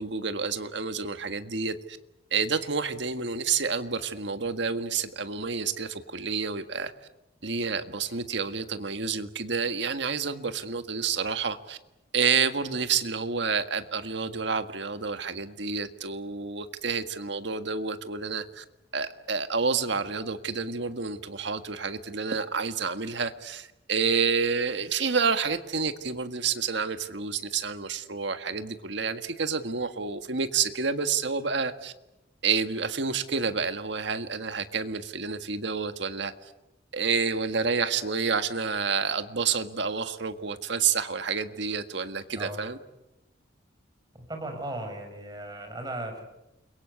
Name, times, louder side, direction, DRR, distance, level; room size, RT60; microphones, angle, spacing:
voice 1, 0.0-2.0 2.3-6.9 7.4-11.8 12.1-18.6 18.9-31.9 32.4-36.5 36.9-42.8, right 5 dB, 65° right, 9 dB, 1.7 m, -29 dB
voice 2, 44.3-46.2, right 1 dB, 20° right, 4 dB, 6.1 m, -36 dB
29.5 x 22.5 x 8.3 m, 0.92 s
head